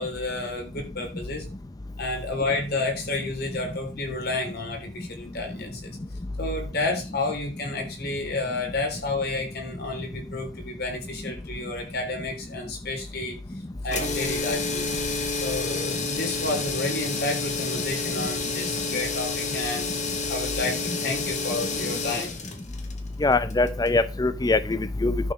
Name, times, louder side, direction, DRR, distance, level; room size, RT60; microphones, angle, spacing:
voice 1, 0.0-1.5 2.0-6.0 6.4-13.4 13.8-14.9 15.3-19.9 20.3-22.3, left 2 dB, 55° left, 3 dB, 3.5 m, -31 dB
sound 1, 13.9-24.0, left 4 dB, 40° left, 1.7 m, -30 dB
voice 2, 23.2-25.3, left 2 dB, 20° left, 12 dB, 0.5 m, -23 dB
11.0 x 4.9 x 6.0 m, 0.33 s
head